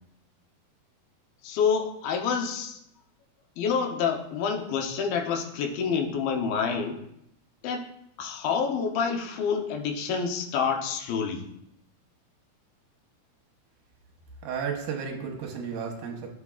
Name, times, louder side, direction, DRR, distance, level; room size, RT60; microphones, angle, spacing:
voice 1, 1.4-2.8 3.6-7.0 7.6-7.9 8.2-11.4, left 6 dB, 85° left, 3 dB, 2.7 m, -28 dB
voice 2, 14.4-16.3, right 6 dB, 85° right, 1 dB, 2.9 m, -33 dB
10.5 x 7.3 x 2.4 m, 0.78 s
omnidirectional pair, 4.1 m